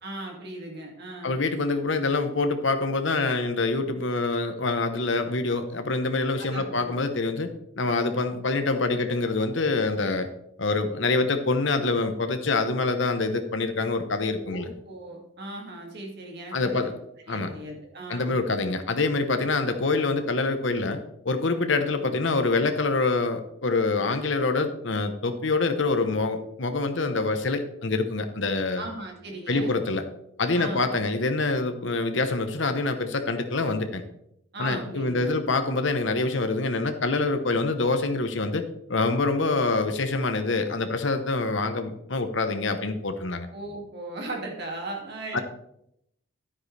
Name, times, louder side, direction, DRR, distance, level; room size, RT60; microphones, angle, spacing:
voice 1, 0.0-1.4 6.4-6.9 14.5-16.9 17.3-18.3 28.8-29.8 30.5-30.9 34.5-35.3 43.5-45.4, right 2 dB, 50° right, 0 dB, 2.4 m, -37 dB
voice 2, 1.2-7.5 7.8-10.3 10.6-14.7 16.5-16.9 17.3-17.6 18.1-21.0 21.2-28.8 29.5-30.0 30.4-34.0 34.6-38.6 38.9-43.5 45.3-45.4, left 3 dB, 60° left, 7 dB, 1.1 m, -25 dB
11.0 x 9.5 x 3.4 m, 0.75 s
head